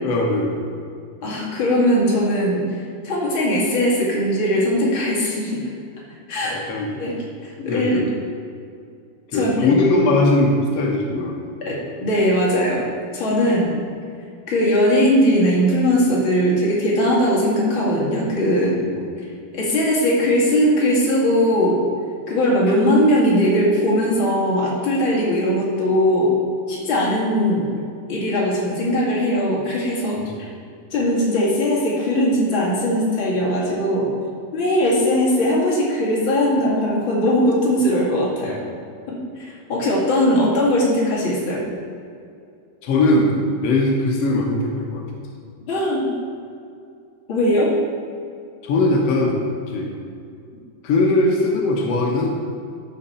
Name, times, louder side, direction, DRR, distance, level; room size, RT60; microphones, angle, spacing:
voice 1, 0.0-0.7 6.4-7.0 7.6-8.1 9.3-11.4 13.4-13.7 18.9-19.1 30.2-30.4 38.4-38.5 42.8-45.3 48.6-50.0 50.8-52.3, left 2 dB, 85° left, 0 dB, 1.4 m, -20 dB
voice 2, 1.2-2.6 3.0-5.6 6.3-6.6 7.0-7.2 7.4-8.0 9.3-9.8 11.6-12.8 13.1-13.6 14.5-18.8 19.5-21.8 22.3-26.3 26.7-27.7 28.1-30.2 30.9-34.1 34.5-38.6 39.1-41.6 45.7-46.1 47.3-47.7, equal, 40° left, -5 dB, 2.3 m, -19 dB
12.5 x 6.5 x 4.3 m, 2.4 s
omnidirectional pair, 4.3 m